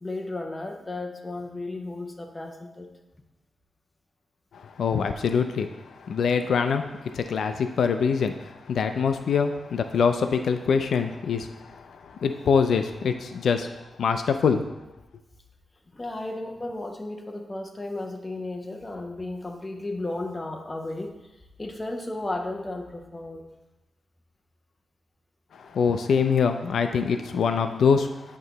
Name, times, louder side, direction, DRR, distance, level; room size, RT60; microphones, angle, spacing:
voice 1, 0.0-2.9 15.9-21.1 21.6-23.5, left 2 dB, 15° left, 3 dB, 0.5 m, -34 dB
voice 2, 4.8-5.7 6.1-6.8 7.1-8.3 8.7-11.5 12.2-13.7 14.0-14.6 25.7-28.1, left 6 dB, 80° left, 8 dB, 0.3 m, -23 dB
8.4 x 2.9 x 3.9 m, 1.0 s
wide cardioid pair, 165°, 0 cm